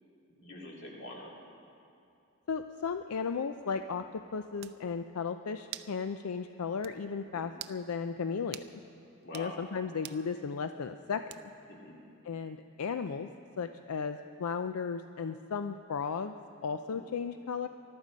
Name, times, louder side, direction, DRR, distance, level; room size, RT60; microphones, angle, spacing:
voice 1, 0.3-1.3 7.3-7.5 9.2-9.6 11.7-11.9 16.9-17.1, left 1 dB, 55° left, -2 dB, 2.8 m, -45 dB
voice 2, 2.5-8.8 9.3-11.3 12.2-13.3 13.6-16.3 16.6-17.7, left 5 dB, 85° left, 9 dB, 0.5 m, -35 dB
sound 1, 4.2-4.3 4.6-4.8 5.7-6.0 6.3-6.4 6.8-7.0 7.5-7.8 8.5-8.7 9.2-9.5 10.0-10.2 11.3-11.6, right 13 dB, 50° right, 0.4 m, -44 dB
22.0 x 12.0 x 5.2 m, 2.7 s
head